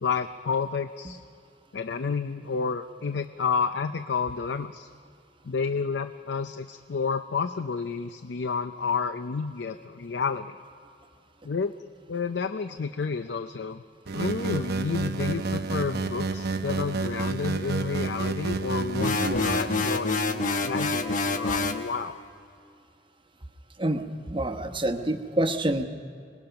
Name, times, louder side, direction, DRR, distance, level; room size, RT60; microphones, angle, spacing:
voice 1, 0.0-1.2 1.7-4.9 5.4-10.6 11.4-11.7 12.1-13.8 14.1-22.2, left 5 dB, 75° left, 10 dB, 0.5 m, -30 dB
sound 1, 14.1-20.0, right 4 dB, 65° right, 0.8 m, -30 dB
sound 2, 19.0-21.9, left 3 dB, 50° left, 1.1 m, -27 dB
voice 2, 23.8-25.8, right 1 dB, 30° right, 7 dB, 1.0 m, -27 dB
26.5 x 20.0 x 5.8 m, 2.4 s
head